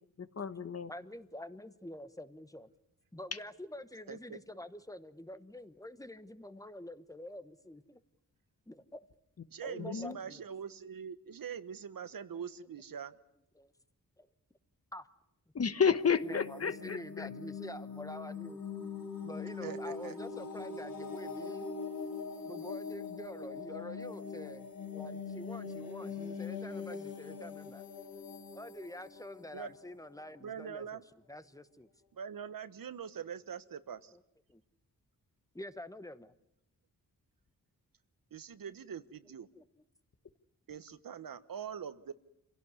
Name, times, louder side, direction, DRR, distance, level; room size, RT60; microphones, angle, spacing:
voice 1, 0.2-0.9 9.8-10.2 15.5-17.3, left 6 dB, 45° left, 12 dB, 1.2 m, -31 dB
voice 2, 0.9-2.7 3.1-8.0 8.7-9.1 9.6-10.4 13.6-13.7 14.2-14.3 14.9-15.1 16.2-18.6 19.2-21.7 22.4-27.8 28.5-31.0 31.3-31.9 34.5-34.6 35.5-36.3 39.5-39.6, left 1 dB, 10° left, 12 dB, 1.1 m, -47 dB
voice 3, 4.1-4.4 9.5-13.1 19.6-20.2 29.5-29.7 30.4-31.0 32.1-34.1 38.3-39.5 40.7-42.1, right 7 dB, 75° right, 13 dB, 1.2 m, -43 dB
sound 1, 16.0-30.7, left 5 dB, 85° left, 5.6 m, -42 dB
27.0 x 17.0 x 9.8 m, 0.80 s
wide cardioid pair, 145°, 35 cm